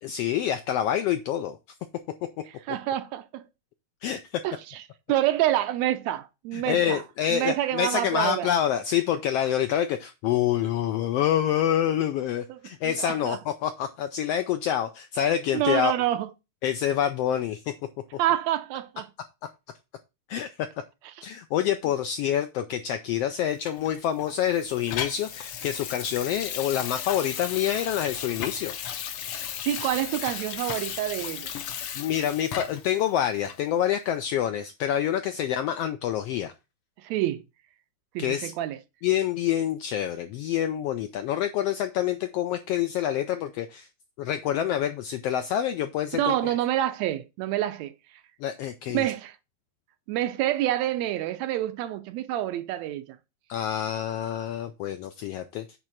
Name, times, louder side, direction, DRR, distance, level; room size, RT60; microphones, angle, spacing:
voice 1, 0.0-1.6 4.0-4.4 6.5-15.9 16.6-17.7 20.3-20.5 21.2-28.7 32.0-36.5 38.2-38.5 39.0-43.9 44.2-46.5 48.4-49.1 53.5-55.7, left 10 dB, 80° left, 1.4 m, -27 dB
voice 2, 2.7-3.4 4.4-4.8 5.1-7.0 7.3-8.5 12.5-13.4 15.5-16.3 18.2-19.1 29.7-31.5 37.0-37.4 38.1-38.8 46.1-47.9 48.9-49.4 50.1-53.2, right 13 dB, 75° right, 1.8 m, -27 dB
Water tap faucet / Sink (filling or washing), 23.7-32.9 33.4-33.6, left 9 dB, 65° left, 1.5 m, -35 dB
8.9 x 3.3 x 6.2 m
omnidirectional pair, 3.3 m